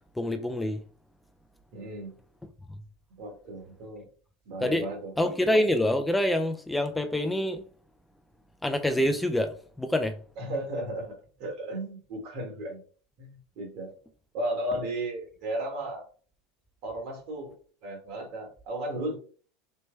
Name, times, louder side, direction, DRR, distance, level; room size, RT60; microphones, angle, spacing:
voice 1, 0.2-0.8 4.6-4.9 5.2-7.6 8.6-10.1, left 1 dB, 5° left, 0.3 m, -26 dB
voice 2, 1.7-2.1 3.2-4.1 4.4-5.1 10.4-12.8 13.2-13.9 14.3-16.0 16.8-17.5 17.8-19.2, right 1 dB, 60° right, 1.5 m, -34 dB
4.4 x 2.1 x 3.2 m
supercardioid pair, 120°, 0 cm